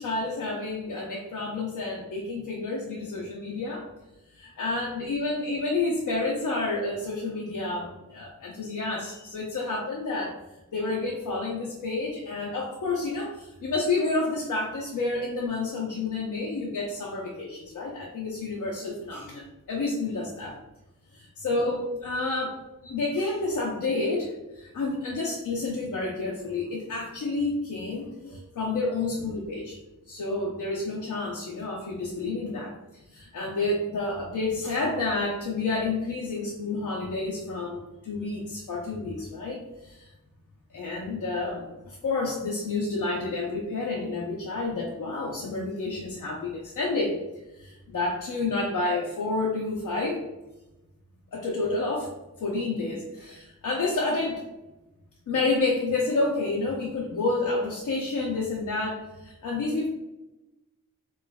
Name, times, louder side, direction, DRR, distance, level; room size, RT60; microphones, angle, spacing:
voice 1, 0.0-3.9 4.6-10.3 10.7-20.6 21.4-29.8 30.1-32.7 33.1-40.1 40.7-47.2 47.6-50.2 51.3-52.1 52.4-54.4 55.3-59.9, left 3 dB, 65° left, -2 dB, 0.6 m, -29 dB
4.5 x 2.5 x 2.2 m, 0.99 s
wide cardioid pair, 115°, 33 cm